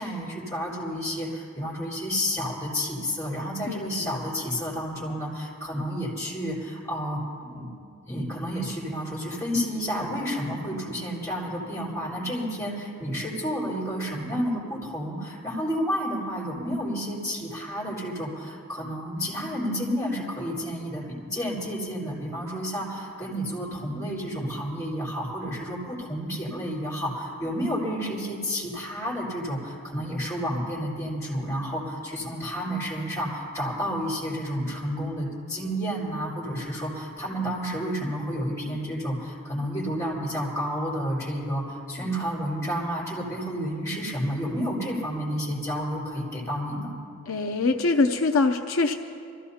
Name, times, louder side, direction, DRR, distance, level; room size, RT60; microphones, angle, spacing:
voice 1, 0.0-7.7 8.0-46.9, equal, 15° left, -6 dB, 4.2 m, -30 dB
voice 2, 3.7-4.1 47.3-48.9, left 3 dB, 70° left, 4 dB, 0.6 m, -24 dB
25.5 x 15.5 x 2.8 m, 2.4 s
head